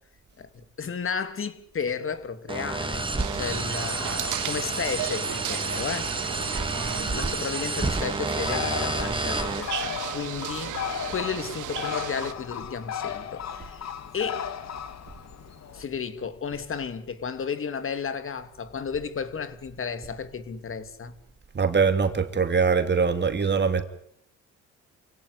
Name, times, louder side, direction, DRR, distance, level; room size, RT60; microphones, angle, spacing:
voice 1, 0.4-6.1 6.7-10.8 11.1-14.5 15.7-21.1, left 6 dB, 45° left, 2.6 m, -33 dB
sound 1, 2.5-9.6, right 3 dB, 15° right, 2.9 m, -29 dB
sound 2, 3.2-12.3, right 13 dB, 80° right, 1.7 m, -35 dB
Bird, 8.4-15.9, left 8 dB, 60° left, 2.2 m, -35 dB
voice 2, 21.5-23.8, right 5 dB, 35° right, 2.8 m, -22 dB
28.5 x 16.5 x 10.0 m
cardioid pair, 90°, 30 cm